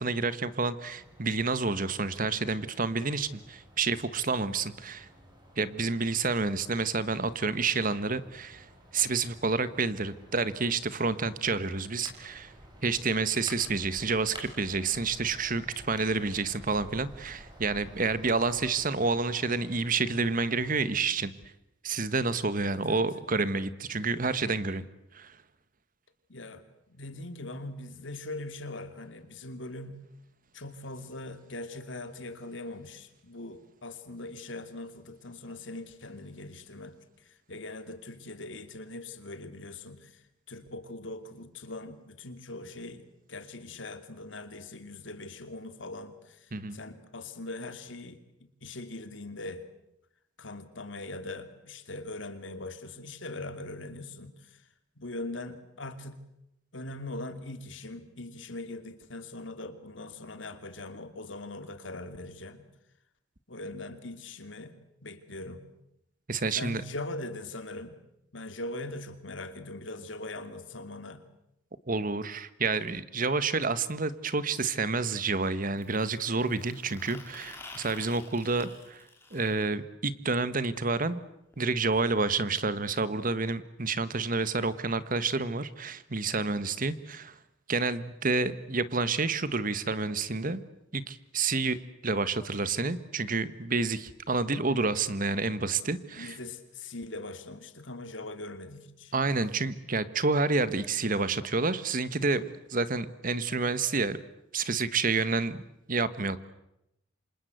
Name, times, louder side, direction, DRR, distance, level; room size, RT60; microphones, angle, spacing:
voice 1, 0.0-5.1 5.6-8.7 8.9-12.5 12.8-21.3 21.8-24.8 25.1-25.4 46.5-46.8 66.3-66.8 71.9-81.2 81.6-87.4 87.7-90.6 90.9-91.8 92.0-96.4 99.1-102.4 102.7-104.2 104.5-105.6 105.9-106.4, right 4 dB, 45° right, 15 dB, 1.4 m, -29 dB
sound 1, 0.9-20.8, right 1 dB, 20° right, 6.1 m, -52 dB
voice 2, 22.6-23.0 26.3-30.0 30.5-49.6 50.4-54.7 55.0-56.2 56.7-62.7 63.5-64.7 65.0-65.6 66.5-68.0 68.3-71.2 95.8-99.1, left 2 dB, 75° left, 9 dB, 2.7 m, -41 dB
sound 2, 75.8-79.6 81.5-81.6 81.9-82.0 82.3-82.4 83.3-83.4, left 3 dB, 10° left, 4.2 m, -49 dB
28.0 x 26.0 x 8.0 m, 0.84 s
head